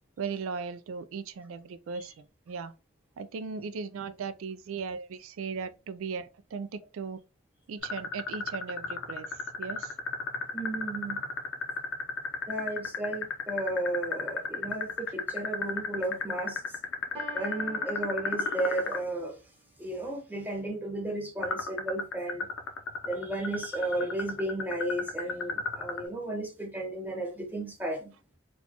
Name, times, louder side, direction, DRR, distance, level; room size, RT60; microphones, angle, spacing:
voice 1, 0.2-2.7 3.2-7.2 7.7-9.3 9.6-9.9, right 5 dB, 85° right, 0.4 m, -37 dB
sound 1, 7.8-19.0 21.4-26.1, left 4 dB, 80° left, 0.6 m, -33 dB
voice 2, 10.5-11.2 12.5-16.6 17.3-19.4 19.8-22.5 23.1-28.1, right 1 dB, 10° right, 0.6 m, -34 dB
Piano, 17.1-19.1, right 2 dB, 25° right, 1.5 m, -46 dB
4.2 x 2.3 x 2.8 m
head